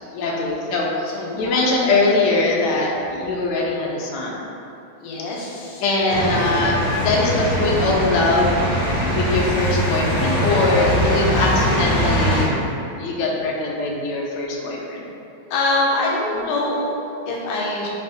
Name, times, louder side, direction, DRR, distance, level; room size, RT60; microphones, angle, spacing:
voice 1, 0.2-1.1 1.3-4.4 5.8-6.7 7.0-12.5 13.0-15.0 16.3-16.4, left 2 dB, 75° left, -3 dB, 1.0 m, -22 dB
voice 2, 1.1-1.6 5.0-6.5 7.2-7.3 10.5-11.4 14.6-14.7 15.5-17.9, left 2 dB, 90° left, -3 dB, 1.5 m, -25 dB
sound 1, 6.1-12.4, equal, 30° left, 0.8 m, -21 dB
3.3 x 2.8 x 3.5 m, 2.7 s
omnidirectional pair, 2.2 m